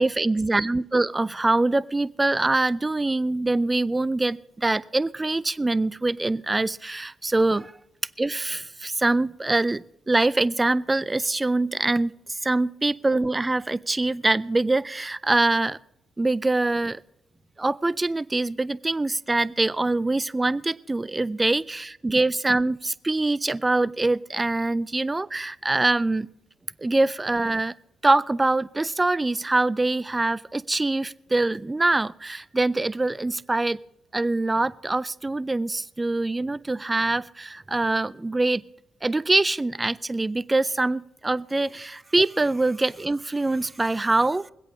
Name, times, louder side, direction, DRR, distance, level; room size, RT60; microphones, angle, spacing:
voice 1, 0.0-7.7 8.2-15.8 16.2-17.0 17.6-26.3 26.8-27.7 28.0-33.8 34.1-38.6 39.0-44.5, right 2 dB, 15° right, 16 dB, 0.4 m, -24 dB
23.0 x 8.3 x 3.6 m, 0.84 s
cardioid pair, 90°, 0 cm